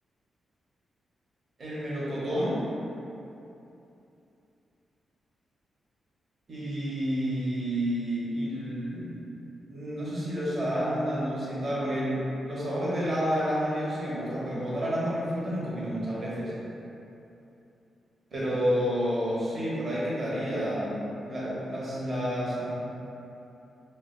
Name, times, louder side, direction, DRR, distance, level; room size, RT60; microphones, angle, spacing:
voice 1, 1.6-2.6 6.5-9.1 9.7-12.2 12.4-16.5 18.3-22.7, equal, 40° right, -8 dB, 0.9 m, -30 dB
4.4 x 2.1 x 2.3 m, 2.8 s
wide cardioid pair, 155°, 0 cm